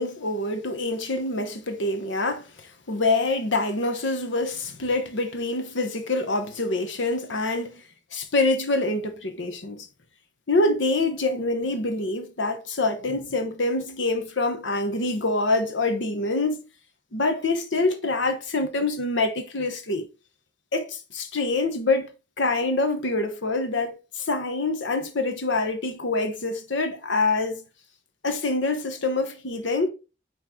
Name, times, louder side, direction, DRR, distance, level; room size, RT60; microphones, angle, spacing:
voice 1, 0.0-7.8 8.1-9.9 10.5-16.6 17.1-20.1 20.7-22.1 22.4-27.6 28.2-29.9, left 2 dB, 75° left, 1.0 m, -26 dB
9.0 x 3.2 x 3.7 m
head